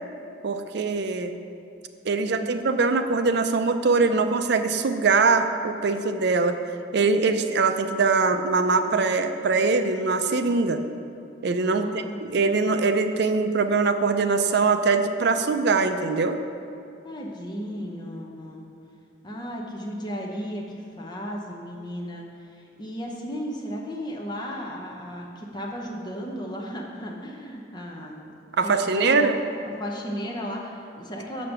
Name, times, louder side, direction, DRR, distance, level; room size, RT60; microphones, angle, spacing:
voice 1, 0.4-1.3 2.1-6.6 6.9-10.8 11.4-16.4 28.6-29.3, right 4 dB, 60° right, 8 dB, 0.5 m, -22 dB
voice 2, 2.2-2.6 11.7-12.2 17.0-18.7 19.2-28.3 28.6-29.4 29.6-31.5, equal, 25° left, -1 dB, 0.8 m, -35 dB
6.7 x 5.2 x 7.1 m, 2.6 s
head